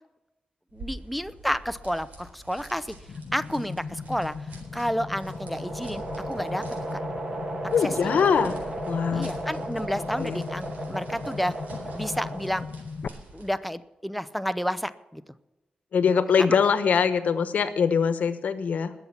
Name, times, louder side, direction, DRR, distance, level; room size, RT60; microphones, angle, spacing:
voice 1, 0.7-2.9 3.3-4.4 4.7-6.6 6.9-7.0 7.8-8.1 9.1-11.5 11.9-12.7 13.3-15.2 16.1-16.2 16.5-16.6, equal, ahead, 12 dB, 0.5 m, -30 dB
sound 1, 0.7-13.6, right 1 dB, 70° right, 4.0 m, -48 dB
sound 2, 3.1-13.1, left 5 dB, 55° left, 0.6 m, -38 dB
sound 3, 4.5-12.8, right 2 dB, 40° right, 2.4 m, -35 dB
voice 2, 7.7-8.6 8.9-9.3 10.0-10.4 15.9-18.9, left 6 dB, 70° left, 11 dB, 1.1 m, -23 dB
20.5 x 7.1 x 5.8 m, 1.0 s
wide cardioid pair, 145°, 3 cm